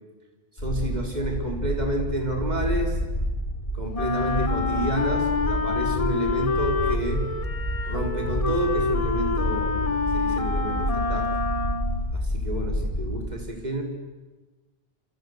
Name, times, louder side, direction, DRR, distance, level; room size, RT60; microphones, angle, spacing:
sound 1, 0.6-13.2, equal, 55° left, 8.4 m, -29 dB
voice 1, 0.6-3.0 3.7-7.3 7.8-11.4 12.1-13.8, right 1 dB, 35° right, 2 dB, 4.3 m, -30 dB
Wind instrument woodwind instrument, 3.9-12.1, left 4 dB, 30° left, 1.0 m, -27 dB
28.5 x 26.0 x 8.1 m, 1.2 s
omnidirectional pair, 1.2 m